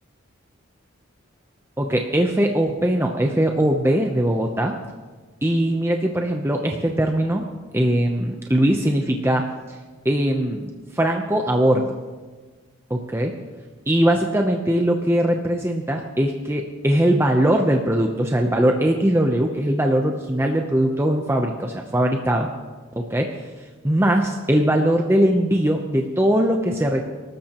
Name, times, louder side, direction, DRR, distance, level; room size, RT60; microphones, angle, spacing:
voice 1, 1.8-4.7 5.4-7.4 7.7-9.8 10.0-11.9 12.9-13.3 13.9-22.5 22.9-23.3 23.8-27.0, right 1 dB, 10° right, 2 dB, 0.7 m, -20 dB
25.0 x 13.0 x 3.0 m, 1.4 s
head